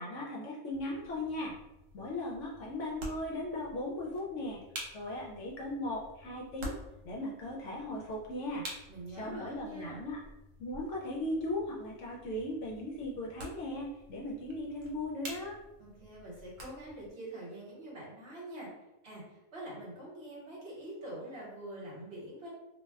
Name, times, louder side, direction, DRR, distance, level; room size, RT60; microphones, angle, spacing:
voice 1, 0.0-1.5 1.9-4.6 4.9-6.8 7.0-8.7 9.1-10.2 10.6-15.6, left 1 dB, 65° left, -2 dB, 0.8 m, -37 dB
sound 1, 0.7-17.1, equal, 70° right, 1.1 m, -49 dB
voice 2, 8.9-10.0 15.8-18.7 19.0-22.5, right 1 dB, 50° right, -5 dB, 1.1 m, -45 dB
2.5 x 2.1 x 3.4 m, 0.97 s
omnidirectional pair, 1.5 m